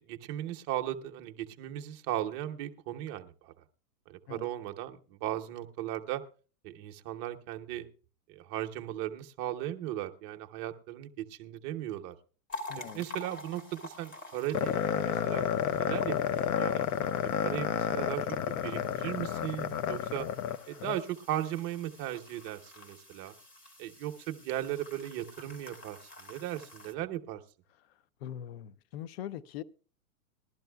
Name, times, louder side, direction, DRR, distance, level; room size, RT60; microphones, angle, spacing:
voice 1, 0.0-3.5 4.1-6.2 6.6-7.9 8.3-12.2 12.8-16.2 16.5-16.8 17.4-20.3 20.7-23.3 23.8-27.4, right 12 dB, 30° right, 0.8 m, -37 dB
sound 1, 12.5-26.9, left 2 dB, 20° left, 1.6 m, -49 dB
voice 2, 12.7-13.1 28.2-29.6, left 11 dB, 40° left, 0.5 m, -41 dB
sound 2, 14.5-21.0, left 9 dB, 65° left, 0.8 m, -31 dB
20.0 x 12.0 x 2.3 m
hypercardioid pair, 150°, 47 cm